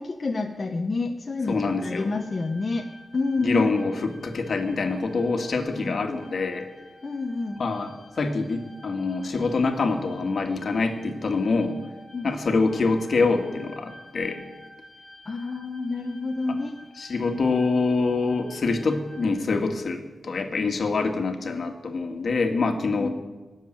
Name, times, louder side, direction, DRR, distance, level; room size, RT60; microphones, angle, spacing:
voice 1, 0.0-2.9 3.1-3.9 5.8-6.0 7.0-7.6 12.1-12.3 15.2-16.7 17.2-17.3 23.0-23.1, left 3 dB, 40° left, 3 dB, 0.9 m, -28 dB
sound 1, 1.4-19.3, left 1 dB, 15° right, 4.6 m, -50 dB
voice 2, 1.5-2.1 3.4-6.7 7.6-7.9 8.2-11.8 12.2-14.5 17.0-23.1, left 3 dB, 60° left, 6 dB, 1.8 m, -25 dB
18.0 x 7.4 x 9.0 m, 1.2 s
wide cardioid pair, 120°, 0 cm